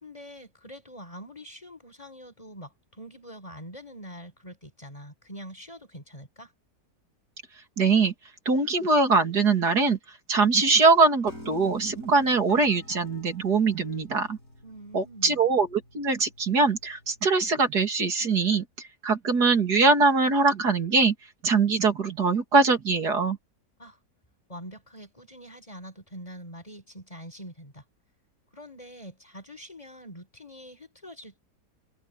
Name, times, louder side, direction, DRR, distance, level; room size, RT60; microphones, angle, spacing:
voice 1, 0.0-6.5 14.6-15.4 23.8-24.0 24.5-27.8 28.5-31.4, equal, 20° left, 5.0 m, -44 dB
voice 2, 7.8-8.1 8.5-10.0 10.3-14.4 14.9-18.6 19.0-21.1 21.4-23.4, right 4 dB, 75° right, 3.5 m, -22 dB
Piano, 11.3-17.5, left 1 dB, 55° left, 8.6 m, -48 dB
omnidirectional pair, 1.7 m